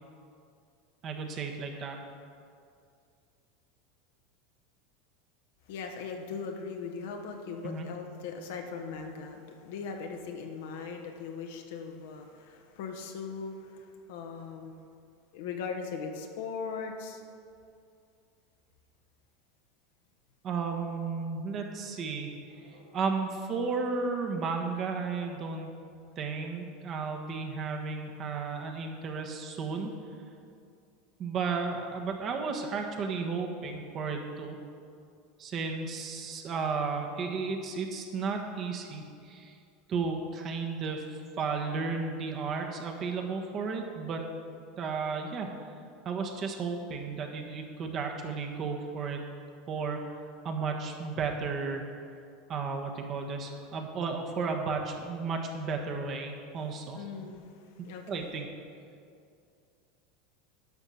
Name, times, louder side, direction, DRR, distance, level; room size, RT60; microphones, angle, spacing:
voice 1, 1.0-2.0 7.6-7.9 20.4-22.3 22.9-25.7 26.2-29.9 31.2-34.6 35.4-39.6 39.9-44.2 44.8-45.5 46.0-49.2 49.7-50.2 50.4-51.8 52.5-57.0 58.1-58.5, right 4 dB, 40° right, 3 dB, 1.4 m, -33 dB
voice 2, 5.7-14.7 15.3-17.2 22.5-23.0 56.9-58.3, left 5 dB, 75° left, 3 dB, 1.2 m, -39 dB
11.0 x 5.5 x 6.4 m, 2.4 s
hypercardioid pair, 100°, 0 cm